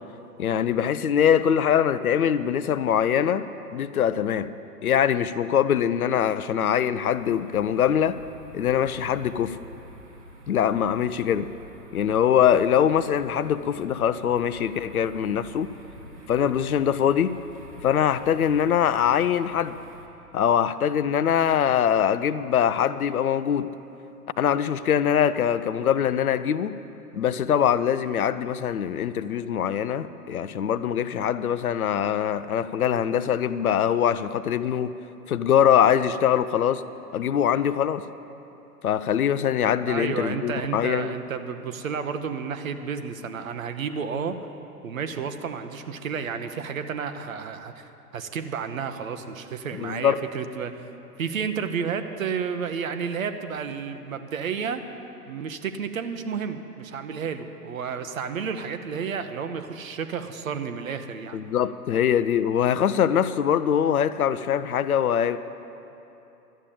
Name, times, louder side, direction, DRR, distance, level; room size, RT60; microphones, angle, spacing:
voice 1, 0.4-4.5 4.8-8.2 8.5-9.6 10.5-11.5 11.9-15.7 16.3-17.3 17.8-19.8 20.3-23.7 24.4-26.8 27.1-34.9 35.3-36.8 37.1-38.0 38.8-41.2 49.8-50.2 61.3-65.4, left 9 dB, 60° left, 13 dB, 0.6 m, -23 dB
sound 1, 7.1-20.1, equal, 85° right, 1.7 m, -47 dB
voice 2, 39.9-44.4 44.8-50.7 51.2-54.8 55.3-61.4, right 6 dB, 55° right, 9 dB, 1.0 m, -31 dB
12.5 x 8.4 x 8.5 m, 2.9 s
figure-of-eight pair, 120°, 49 cm